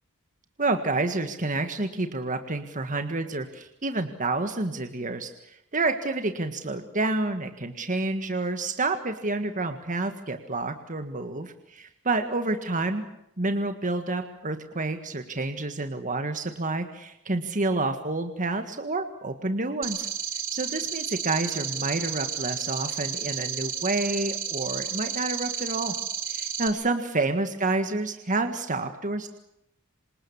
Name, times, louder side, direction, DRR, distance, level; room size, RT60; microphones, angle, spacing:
voice 1, 0.6-13.0 13.4-20.1 20.5-25.9 26.3-29.3, right 2 dB, 35° right, 7 dB, 1.7 m, -29 dB
sound 1, 19.8-26.7, right 7 dB, 60° right, 3.4 m, -32 dB
27.0 x 27.0 x 7.2 m, 0.82 s
head